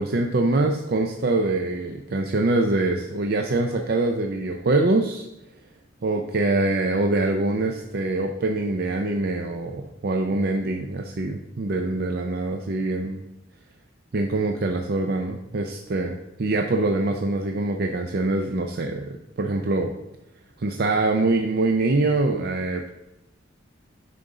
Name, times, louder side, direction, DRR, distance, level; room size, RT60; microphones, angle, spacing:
voice 1, 0.0-5.3 6.0-13.2 14.1-19.9 20.6-22.9, right 2 dB, 50° right, 3 dB, 0.5 m, -24 dB
9.3 x 3.9 x 4.9 m, 0.90 s
head